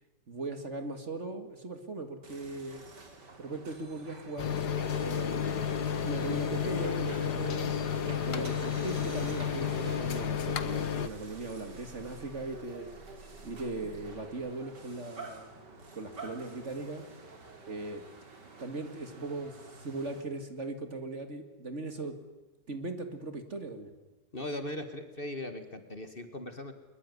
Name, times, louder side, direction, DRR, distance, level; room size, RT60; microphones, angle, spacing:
voice 1, 0.3-2.8 3.4-5.6 6.0-7.7 8.3-12.9 13.4-15.5 15.9-17.0 17.7-18.0 18.6-22.2 22.7-23.9, right 2 dB, 40° right, 8 dB, 2.3 m, -39 dB
sound 1, 2.2-20.2, right 3 dB, 75° right, 3.7 m, -47 dB
sound 2, 4.4-11.1, left 8 dB, 65° left, 1.8 m, -32 dB
voice 2, 24.3-26.7, left 1 dB, 30° left, 8 dB, 1.9 m, -39 dB
22.5 x 21.5 x 9.8 m, 1.1 s
omnidirectional pair, 1.9 m